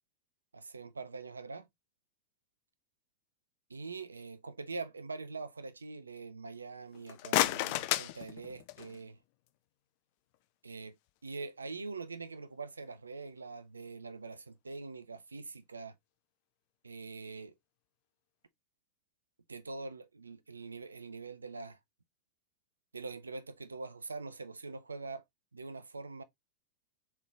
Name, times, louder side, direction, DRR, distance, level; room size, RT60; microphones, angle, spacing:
voice 1, 0.5-1.7 3.7-9.2 10.6-11.0 11.2-15.9 16.8-17.5 19.5-21.8 22.9-25.2 25.5-26.2, right 4 dB, 75° right, 0.5 m, -44 dB
sound 1, 6.9-9.0, left 15 dB, 45° left, 0.3 m, -32 dB
3.8 x 3.2 x 3.2 m
figure-of-eight pair, 90°, 0 cm